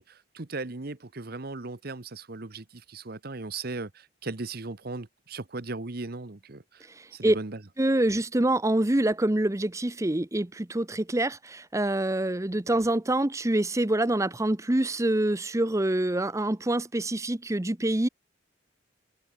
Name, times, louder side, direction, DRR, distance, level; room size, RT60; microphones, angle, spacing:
voice 1, 0.0-7.6, right 3 dB, 55° right, 1.1 m, -37 dB
voice 2, 6.9-7.4 7.8-18.1, right 1 dB, 15° right, 0.7 m, -26 dB
head